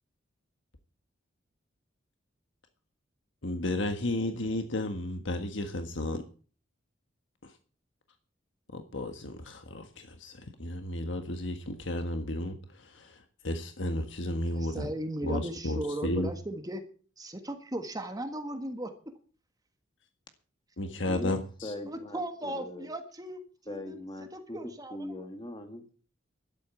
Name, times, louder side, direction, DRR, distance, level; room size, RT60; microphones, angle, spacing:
voice 1, 3.4-6.2 8.7-13.2 13.4-14.9 15.2-16.3 20.8-21.7, left 1 dB, 65° left, 6 dB, 1.4 m, -33 dB
voice 2, 14.4-16.8 17.2-18.9 21.9-24.0 24.3-25.3, right 1 dB, 20° right, 7 dB, 1.5 m, -37 dB
voice 3, 21.1-22.9 23.7-24.6 24.9-25.9, left 1 dB, 25° left, 6 dB, 2.0 m, -40 dB
12.5 x 8.3 x 8.2 m, 0.40 s
head